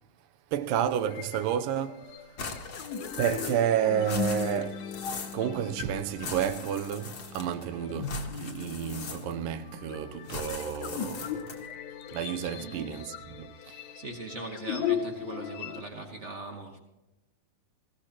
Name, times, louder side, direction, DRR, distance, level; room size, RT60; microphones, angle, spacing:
voice 1, 0.5-2.2 3.2-4.8 5.3-11.6 12.1-13.8, right 9 dB, 85° right, 2.4 m, -31 dB
sound 1, 1.1-15.8, left 8 dB, 75° left, 2.3 m, -38 dB
sound 2, 2.4-3.7 4.0-5.4 6.2-7.6 8.0-9.5 10.3-11.7, left 4 dB, 45° left, 1.3 m, -40 dB
voice 2, 12.5-13.0 13.5-16.8, right 2 dB, 70° right, 0.6 m, -41 dB
21.0 x 16.0 x 2.9 m
omnidirectional pair, 4.0 m